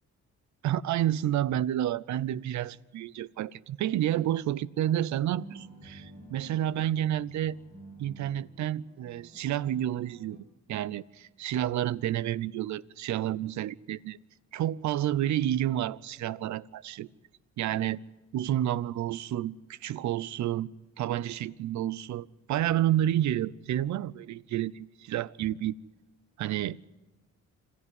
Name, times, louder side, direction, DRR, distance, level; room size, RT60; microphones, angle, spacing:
voice 1, 0.6-7.6 8.0-10.4 10.7-14.2 14.5-17.1 17.6-18.0 18.3-20.7 21.0-25.7 26.4-26.8, right 12 dB, 70° right, 0.7 m, -30 dB
sound 1, 5.4-10.4, right 1 dB, 25° right, 5.7 m, -51 dB
26.5 x 14.0 x 9.5 m
cardioid pair, 90°, 30 cm